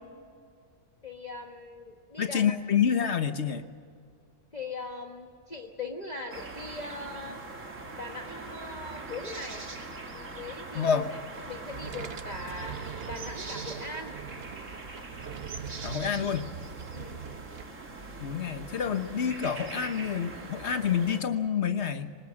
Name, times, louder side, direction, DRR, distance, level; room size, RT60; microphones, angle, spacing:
voice 1, 1.0-2.5 4.5-7.4 8.0-9.6 10.1-11.2 11.5-12.8 13.1-14.1 16.9-17.2, left 3 dB, 35° left, 2 dB, 1.3 m, -40 dB
voice 2, 2.2-3.6 10.7-11.1 15.8-16.5 18.2-22.1, left 7 dB, 60° left, 9 dB, 1.4 m, -28 dB
sound 1, 6.3-21.2, right 3 dB, 80° right, 2.8 m, -42 dB
sound 2, 11.6-17.6, right 7 dB, 55° right, 1.0 m, -42 dB
25.0 x 20.5 x 7.6 m, 2.2 s
omnidirectional pair, 1.3 m